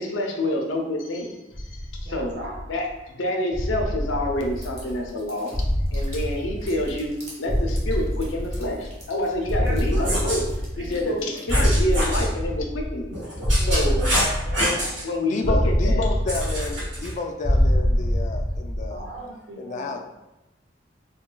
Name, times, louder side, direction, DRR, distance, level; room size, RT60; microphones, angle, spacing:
voice 1, 0.0-1.7 2.0-2.3 2.7-5.5 5.9-10.4 10.8-13.1 13.6-14.0 14.6-14.7 15.0-16.0, left 1 dB, 90° left, 0 dB, 0.6 m, -27 dB
sound 1, 1.5-2.9 3.5-5.1 5.5-7.1 7.5-9.1 9.5-11.1 11.5-13.1 13.4-15.0 15.4-17.1 17.4-19.1, equal, 5° left, 0.6 m, -25 dB
voice 2, 2.0-2.6 9.6-10.1 10.8-11.9 13.6-14.1 14.4-15.0 18.9-20.0, right 1 dB, 65° right, -2 dB, 0.5 m, -37 dB
sound 2, 4.4-11.9, right 1 dB, 35° right, 0.8 m, -45 dB
sound 3, 9.9-10.4 11.5-12.3 13.1-15.0 16.3-17.1, equal, 80° right, 1.4 m, -27 dB
voice 3, 15.2-19.0 19.5-20.0, left 3 dB, 40° left, 5 dB, 0.3 m, -31 dB
4.1 x 2.2 x 2.2 m, 0.97 s
head